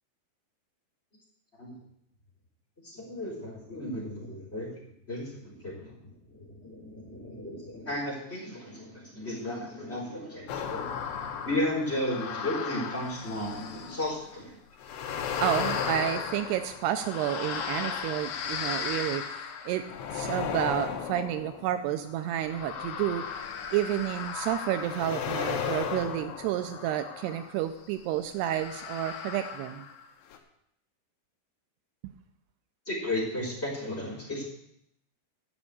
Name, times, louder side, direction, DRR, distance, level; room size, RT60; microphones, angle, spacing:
voice 1, 2.8-4.7 5.1-5.9 6.3-10.9 11.5-14.5 32.9-34.4, left 1 dB, 15° left, -4 dB, 3.6 m, -34 dB
sound 1, 10.5-14.2 14.8-27.6 28.4-30.0 30.3-30.4, left 7 dB, 80° left, 3.4 m, -35 dB
voice 2, 15.4-19.2 19.6-19.8 20.1-23.3 23.7-29.9, right 12 dB, 85° right, 9 dB, 2.6 m, -30 dB
12.5 x 6.4 x 8.3 m, 0.75 s
omnidirectional pair, 4.9 m